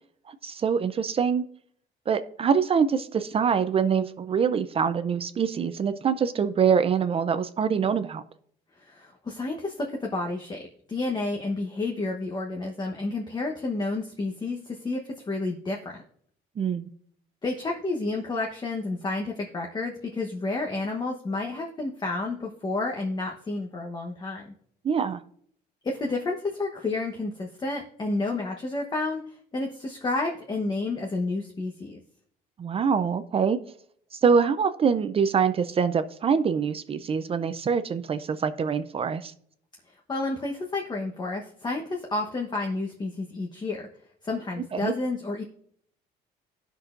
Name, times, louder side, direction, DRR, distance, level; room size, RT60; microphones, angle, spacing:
voice 1, 0.3-1.4 2.1-8.2 16.6-16.9 24.8-25.2 32.6-33.6 34.1-39.3 44.7-44.9, right 6 dB, 35° right, 11 dB, 0.5 m, -24 dB
voice 2, 8.8-16.0 17.4-24.5 25.8-32.0 39.9-43.9 44.2-45.4, left 2 dB, 25° left, 1 dB, 1.1 m, -30 dB
16.5 x 6.1 x 2.5 m, 0.64 s
cardioid pair, 110°, 17 cm